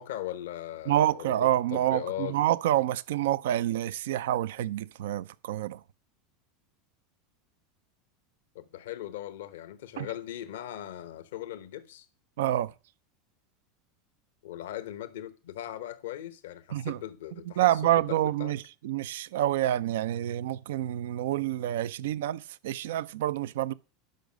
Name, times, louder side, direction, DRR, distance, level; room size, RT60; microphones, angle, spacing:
voice 1, 0.0-2.4 8.5-12.1 14.4-18.5, left 12 dB, 75° left, 0.9 m, -39 dB
voice 2, 0.9-5.8 10.0-10.1 12.4-12.7 16.7-17.0 17.6-23.7, right 13 dB, 75° right, 0.5 m, -28 dB
11.5 x 5.4 x 6.3 m
hypercardioid pair, 90°, 0 cm